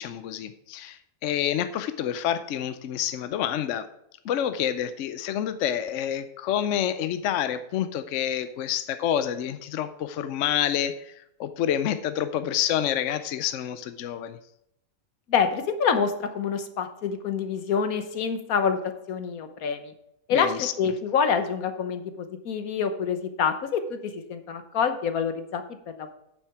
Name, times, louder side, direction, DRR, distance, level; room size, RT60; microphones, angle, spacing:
voice 1, 0.0-3.9 4.2-14.4 20.3-20.7, left 10 dB, 65° left, 11 dB, 0.9 m, -28 dB
voice 2, 15.3-19.9 20.3-26.1, left 6 dB, 85° left, 8 dB, 1.4 m, -27 dB
9.0 x 7.3 x 4.7 m, 0.78 s
omnidirectional pair, 1.5 m